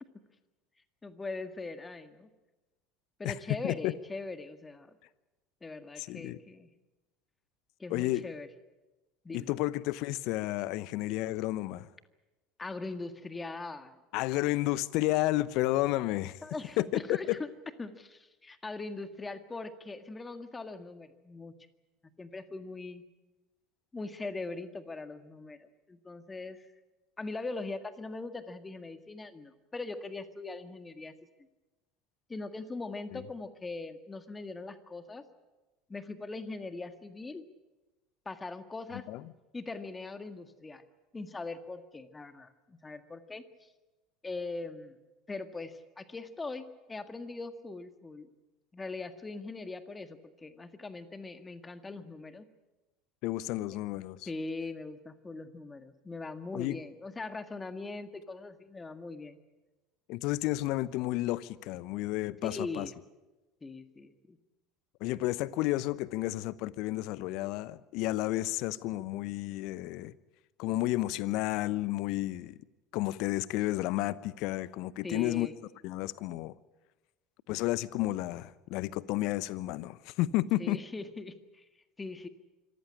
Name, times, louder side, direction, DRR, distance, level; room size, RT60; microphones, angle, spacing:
voice 1, 1.0-2.3 3.2-5.0 5.6-6.7 7.8-8.5 9.2-9.5 12.6-14.0 16.4-17.5 17.8-21.5 22.2-23.0 23.9-26.7 27.2-31.1 32.3-35.2 35.9-37.4 38.2-39.0 39.5-40.8 41.1-43.4 44.2-44.9 45.3-48.3 48.7-52.5 54.3-59.4 62.4-62.9 63.6-64.4 75.0-75.5 80.6-81.6 82.0-82.3, left 3 dB, 20° left, 1.7 m, -41 dB
voice 2, 6.0-6.4 7.9-8.2 9.3-11.9 14.1-16.4 16.8-17.4 33.1-33.2 39.1-39.2 53.2-54.3 56.5-56.8 60.1-62.9 65.0-70.1 70.6-72.6 72.9-75.5 75.8-76.5 77.5-80.8, left 17 dB, 60° left, 0.8 m, -31 dB
25.5 x 15.0 x 9.9 m
hypercardioid pair, 70°, 0 cm